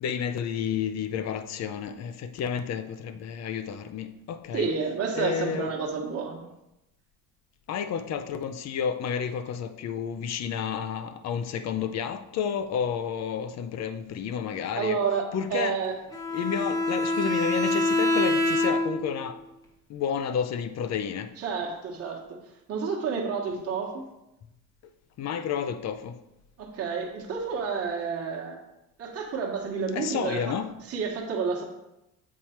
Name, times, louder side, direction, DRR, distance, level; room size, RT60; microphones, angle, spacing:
voice 1, 0.0-4.7 5.1-5.7 7.7-15.0 15.3-15.8 16.3-19.4 19.9-21.3 25.2-26.2 29.9-30.7, left 7 dB, 45° left, 0.5 m, -31 dB
voice 2, 4.5-6.4 14.8-15.2 15.5-15.9 21.4-22.2 22.7-24.0 26.6-28.6 29.0-30.5 30.9-31.6, right 5 dB, 40° right, 1.2 m, -30 dB
Bowed string instrument, 16.1-19.1, left 2 dB, 10° left, 0.7 m, -25 dB
7.4 x 4.4 x 4.4 m
cardioid pair, 155°, 36 cm